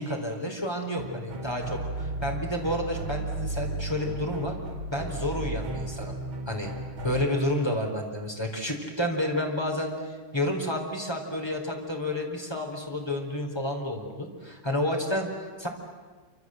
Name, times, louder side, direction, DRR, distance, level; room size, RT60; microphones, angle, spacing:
voice 1, 0.0-4.5 4.9-6.1 6.5-6.7 7.0-15.7, left 1 dB, 10° left, 1 dB, 4.4 m, -30 dB
sound 1, 1.0-7.2, right 2 dB, 85° right, 3.6 m, -34 dB
28.0 x 26.5 x 7.9 m, 1.5 s
omnidirectional pair, 2.1 m